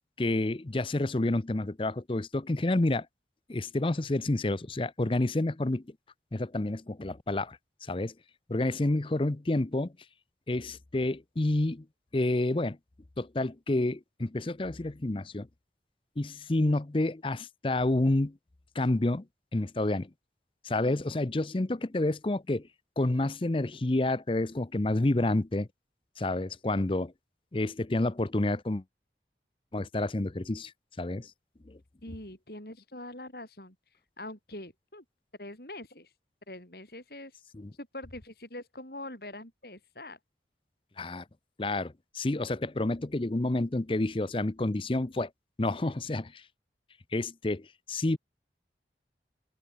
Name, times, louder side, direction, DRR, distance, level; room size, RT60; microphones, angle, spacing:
voice 1, 0.2-3.1 3.5-5.8 6.3-8.1 8.5-9.9 10.5-11.9 12.1-12.8 13.2-15.5 16.2-18.4 18.7-19.3 19.5-20.1 20.6-22.7 23.0-25.7 26.2-27.1 27.5-28.8 29.7-30.7 31.0-31.3 31.7-31.8 37.5-37.7 41.0-41.2 41.6-45.3 45.6-46.4 47.1-48.2, left 2 dB, 30° left, 0.6 m, -29 dB
voice 2, 32.0-33.8 34.2-35.0 35.4-36.1 36.5-37.4 37.8-40.2, left 1 dB, 60° left, 7.1 m, -44 dB
head